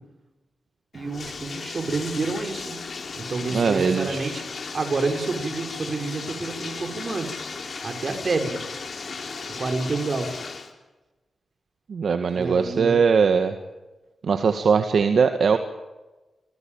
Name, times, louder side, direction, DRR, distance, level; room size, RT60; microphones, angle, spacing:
Bathtub (filling or washing), 0.9-10.7, left 4 dB, 55° left, 4.4 m, -36 dB
voice 1, 0.9-2.8 3.2-4.4 4.7-7.3 7.8-8.6 9.5-10.4 12.3-13.0, right 3 dB, 50° right, 5 dB, 5.3 m, -28 dB
voice 2, 3.5-4.4 11.9-13.5 14.2-15.6, right 5 dB, 70° right, 7 dB, 1.9 m, -20 dB
28.0 x 20.0 x 9.1 m, 1.1 s
cardioid pair, 90°, 0 cm